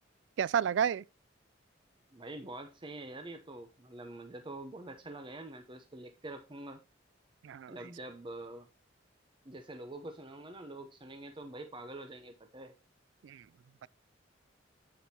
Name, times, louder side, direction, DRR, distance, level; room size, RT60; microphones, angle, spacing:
voice 1, 0.4-1.0 7.4-7.7 13.2-13.4 13.8-13.9, right 8 dB, 70° right, 0.3 m, -30 dB
voice 2, 2.1-6.8 7.7-8.7 9.4-12.7, right 2 dB, 25° right, 0.7 m, -45 dB
8.4 x 7.9 x 2.8 m
head